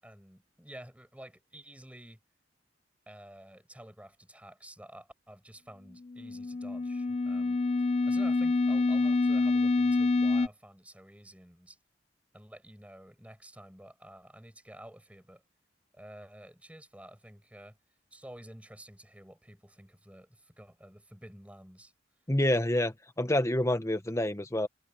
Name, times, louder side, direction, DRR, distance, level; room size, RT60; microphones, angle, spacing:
voice 1, 0.0-2.2 3.1-11.8 12.3-15.4 15.9-17.8 18.1-21.9, right 1 dB, 5° right, 6.5 m, -51 dB
sound 1, 6.1-10.5, left 3 dB, 35° left, 0.4 m, -27 dB
voice 2, 22.3-24.7, left 1 dB, 15° left, 1.4 m, -28 dB
head